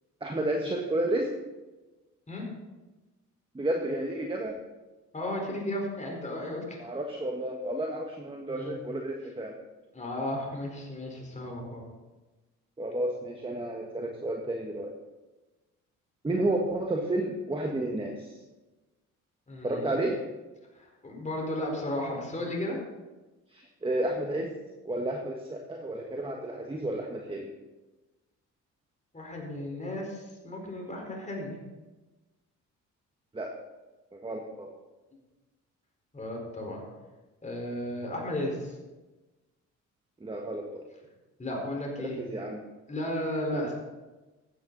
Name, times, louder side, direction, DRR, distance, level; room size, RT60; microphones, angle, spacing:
voice 1, 0.2-1.3 3.5-4.6 6.8-9.5 12.8-14.9 16.2-18.4 19.6-20.2 23.5-24.5 24.8-27.5 33.3-33.5 34.1-34.7 40.2-40.8 42.0-42.6 43.5-43.7, right 1 dB, 15° right, 2 dB, 1.5 m, -31 dB
voice 2, 5.1-6.8 8.6-8.8 9.9-11.8 19.5-20.0 21.0-22.8 29.1-31.6 36.1-36.8 37.4-38.7 41.4-42.2 42.9-43.8, left 1 dB, 25° left, -1 dB, 4.4 m, -34 dB
14.5 x 9.5 x 4.0 m, 1.1 s
cardioid pair, 90°, 30 cm